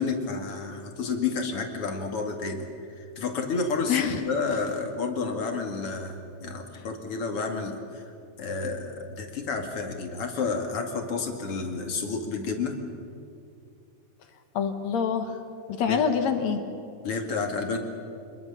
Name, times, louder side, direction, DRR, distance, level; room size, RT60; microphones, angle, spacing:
voice 1, 0.0-2.7 3.2-8.0 8.4-12.8 15.9-16.0 17.0-17.8, left 4 dB, 50° left, 4 dB, 3.1 m, -30 dB
voice 2, 3.9-4.2 14.5-15.3 15.7-16.6, left 7 dB, 70° left, 7 dB, 2.6 m, -25 dB
25.0 x 22.0 x 7.2 m, 2.6 s
omnidirectional pair, 3.4 m